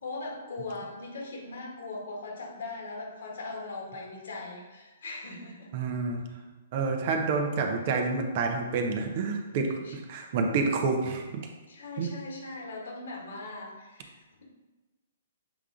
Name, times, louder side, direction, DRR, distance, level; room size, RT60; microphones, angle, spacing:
voice 1, 0.0-5.7 9.8-9.9 11.7-14.4, left 3 dB, 65° left, -1 dB, 1.8 m, -40 dB
voice 2, 5.7-6.3 6.7-11.4 12.0-12.1, right 4 dB, 45° right, 4 dB, 0.8 m, -28 dB
7.2 x 3.7 x 3.6 m, 1.2 s
figure-of-eight pair, 120°, 0 cm